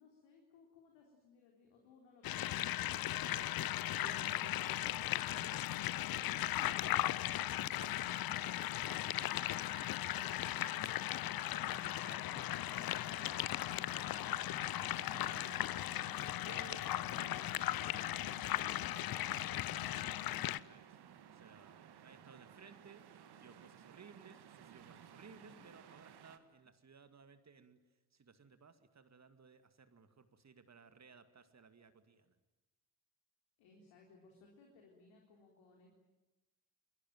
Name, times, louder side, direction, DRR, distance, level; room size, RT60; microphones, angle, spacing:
voice 1, 0.0-2.8 15.9-16.1 25.3-25.7 33.6-36.0, left 3 dB, 65° left, 1 dB, 4.0 m, -64 dB
sound 1, 2.2-20.6, left 14 dB, 50° left, 0.8 m, -37 dB
voice 2, 3.2-3.5 3.8-5.9 6.1-14.6 15.0-15.6 16.5-21.7 22.0-23.0 23.4-27.8 28.1-32.4, right 5 dB, 35° right, 10 dB, 2.3 m, -59 dB
sound 2, 4.6-10.0, left 12 dB, 90° left, 1.3 m, -64 dB
sound 3, 7.5-26.4, right 9 dB, 55° right, 2.2 m, -58 dB
27.5 x 22.0 x 9.2 m, 1.0 s
figure-of-eight pair, 45°, 48 cm